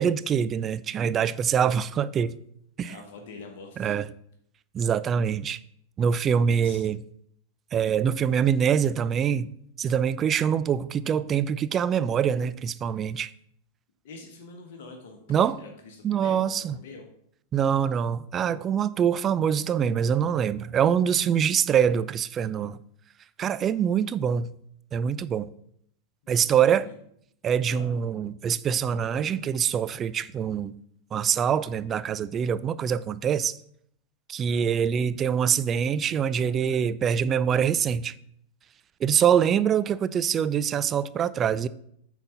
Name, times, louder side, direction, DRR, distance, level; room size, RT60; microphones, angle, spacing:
voice 1, 0.0-2.3 2.8-3.0 3.8-4.1 4.7-5.6 6.0-7.0 7.7-9.5 9.8-13.3 15.3-15.6 16.0-16.8 17.5-22.8 23.4-24.5 24.9-25.5 26.3-26.9 27.4-30.7 31.1-33.6 34.3-38.1 39.0-41.7, right 8 dB, 25° right, 0.3 m, -24 dB
voice 2, 2.8-4.0 6.1-6.2 6.6-6.8 14.0-17.1 26.5-26.9 27.7-27.9 34.5-34.7, left 3 dB, 55° left, 1.2 m, -45 dB
8.9 x 4.0 x 5.7 m
figure-of-eight pair, 90°, 0 cm